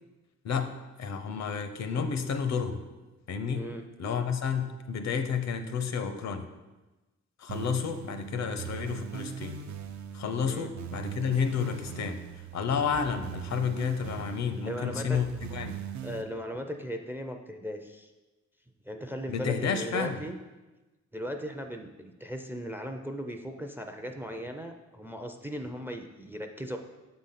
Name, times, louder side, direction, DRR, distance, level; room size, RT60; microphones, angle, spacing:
voice 1, 0.4-2.8 3.3-3.7 4.0-6.5 7.4-9.6 10.1-15.8 19.3-20.2, left 6 dB, 70° left, 7 dB, 0.6 m, -31 dB
sound 1, 7.5-16.2, right 8 dB, 70° right, 0.6 m, -40 dB
voice 2, 14.5-15.2 16.0-18.1 18.8-20.4 21.1-26.8, equal, 5° right, 5 dB, 0.4 m, -37 dB
6.9 x 3.9 x 5.6 m, 1.1 s
wide cardioid pair, 140°, 29 cm